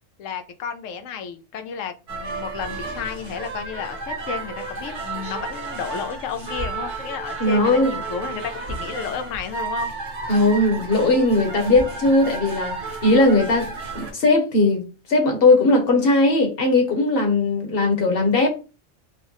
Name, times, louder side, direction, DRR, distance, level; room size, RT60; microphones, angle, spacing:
voice 1, 0.2-9.9, left 7 dB, 90° left, 1.0 m, -32 dB
sound 1, 2.1-14.1, right 3 dB, 65° right, 1.4 m, -32 dB
voice 2, 7.4-7.9 10.3-12.8 13.0-13.7 13.9-14.8 15.1-18.5, left 2 dB, 50° left, 1.0 m, -18 dB
4.5 x 2.1 x 2.9 m
omnidirectional pair, 1.3 m